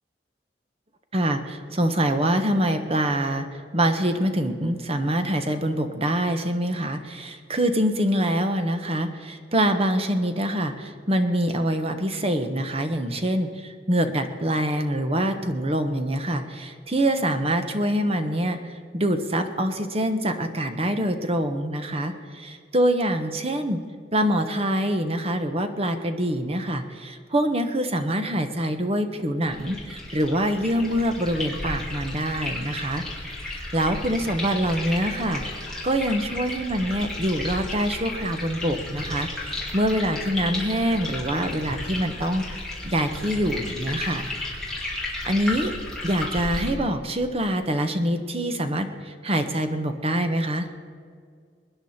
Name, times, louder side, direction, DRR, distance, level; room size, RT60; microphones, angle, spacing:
voice 1, 1.1-3.5 3.7-18.6 18.9-23.8 24.1-33.0 33.4-35.4 35.8-42.4 42.8-44.3 45.3-45.7 46.0-50.7, right 1 dB, 35° right, 7 dB, 1.3 m, -25 dB
sound 1, 29.5-46.7, left 2 dB, 5° left, 4.2 m, -34 dB
23.5 x 10.5 x 4.4 m, 2.1 s
head